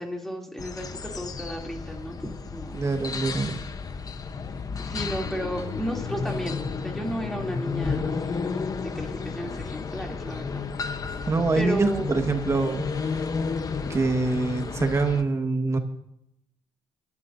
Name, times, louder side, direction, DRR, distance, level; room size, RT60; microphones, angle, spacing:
voice 1, 0.0-2.8 4.8-10.6 11.5-12.2, equal, 5° left, 0 dB, 2.8 m, -34 dB
sound 1, 0.6-15.2, left 5 dB, 35° left, 0.9 m, -32 dB
voice 2, 2.7-3.6 11.3-13.1 13.9-15.8, right 3 dB, 25° right, 6 dB, 1.5 m, -25 dB
27.5 x 12.0 x 2.7 m, 0.82 s
cardioid pair, 115°, 11 cm